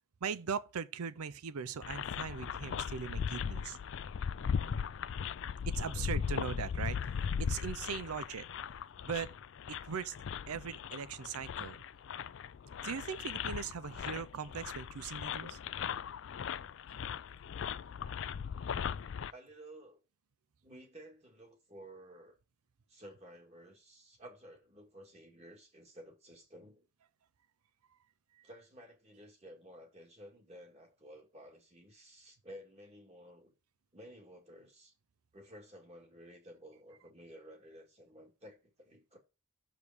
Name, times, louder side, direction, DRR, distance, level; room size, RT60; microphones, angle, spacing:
voice 1, 0.2-3.8 5.7-7.0 7.4-8.5 9.0-9.3 9.7-10.1 10.5-11.8 12.8-15.6 28.4-28.5, right 6 dB, 85° right, 0.5 m, -39 dB
sound 1, 1.8-19.3, left 7 dB, 60° left, 0.3 m, -38 dB
voice 2, 5.9-6.3 19.3-20.0 20.6-22.4 22.9-26.9 28.4-33.5 33.9-34.9 35.3-39.2, equal, 30° right, 1.8 m, -54 dB
6.9 x 5.0 x 5.0 m
head